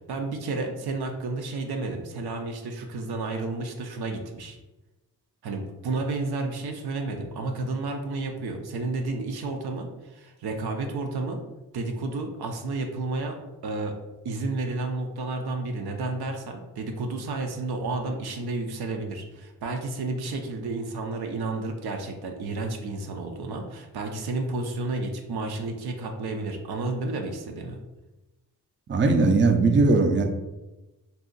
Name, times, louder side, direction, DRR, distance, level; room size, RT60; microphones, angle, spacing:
voice 1, 0.1-4.6 5.4-11.4 11.7-13.4 13.6-14.0 14.2-27.8, right 3 dB, 80° right, 3 dB, 0.6 m, -31 dB
voice 2, 28.9-30.2, right 3 dB, 30° right, 5 dB, 0.4 m, -19 dB
2.7 x 2.4 x 3.8 m, 1.0 s
cardioid pair, 55°, 38 cm